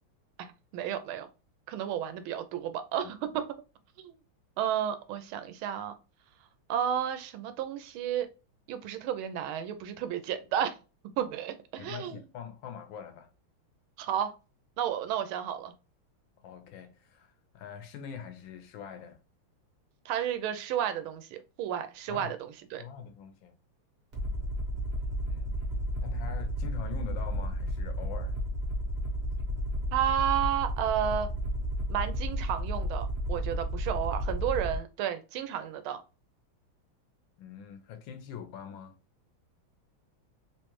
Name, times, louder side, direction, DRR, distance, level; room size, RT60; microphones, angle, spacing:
voice 1, 0.4-1.3 1.7-3.2 4.0-4.2 4.6-5.9 6.7-8.3 8.7-10.7 11.2-12.2 14.0-14.3 14.8-15.7 20.0-22.8 29.9-31.3 31.9-36.0, right 10 dB, 80° right, 1.4 m, -32 dB
voice 2, 11.8-13.3 16.4-19.2 22.1-22.3 22.8-23.5 25.3-25.5 26.0-28.4 37.4-39.0, left 7 dB, 75° left, 1.3 m, -43 dB
Aircraft, 24.1-34.8, equal, 40° right, 1.0 m, -32 dB
3.6 x 3.2 x 3.0 m
omnidirectional pair, 2.3 m